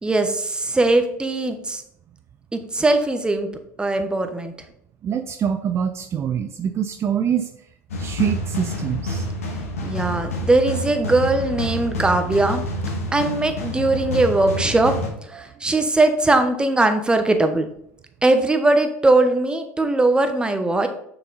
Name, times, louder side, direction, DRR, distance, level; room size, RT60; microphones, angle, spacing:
voice 1, 0.0-1.8 2.5-3.5 3.8-4.5 9.8-12.6 13.1-14.9 15.3-17.6 18.2-20.9, right 2 dB, 10° right, 7 dB, 1.1 m, -20 dB
voice 2, 5.0-7.5 8.0-9.3 15.4-15.5, right 8 dB, 35° right, 8 dB, 0.5 m, -24 dB
sound 1, 7.9-15.1, equal, 90° left, 1.6 m, -28 dB
6.4 x 6.0 x 4.0 m, 0.73 s
hypercardioid pair, 85°, 7 cm